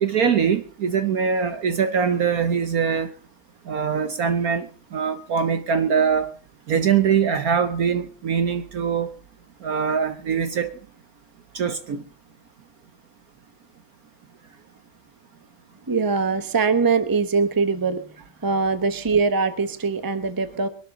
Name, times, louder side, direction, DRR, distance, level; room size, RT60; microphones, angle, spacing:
voice 1, 0.0-3.1 3.7-4.7 4.9-6.3 6.7-9.1 9.6-10.7 11.5-12.0, right 6 dB, 55° right, 11 dB, 1.2 m, -22 dB
voice 2, 15.9-20.7, right 4 dB, 15° right, 11 dB, 1.0 m, -22 dB
22.5 x 12.0 x 3.8 m, 0.37 s
omnidirectional pair, 2.1 m